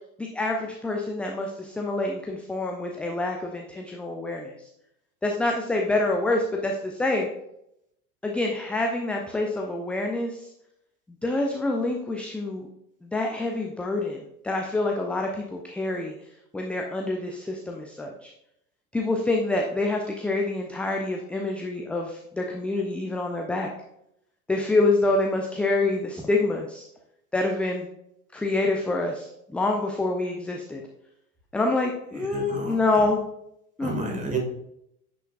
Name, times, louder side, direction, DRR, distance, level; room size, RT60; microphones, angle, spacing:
voice 1, 0.2-4.5 5.2-7.3 8.2-10.5 11.2-12.7 13.0-16.1 16.5-18.3 18.9-23.7 24.5-26.8 27.3-27.9 28.3-30.8 31.5-33.2 33.8-34.3, left 2 dB, 5° left, 1 dB, 0.3 m, -27 dB
voice 2, 32.1-32.8 33.8-34.4, right 3 dB, 15° right, 1 dB, 2.1 m, -31 dB
9.9 x 6.0 x 2.4 m, 0.79 s
figure-of-eight pair, 75°, 44 cm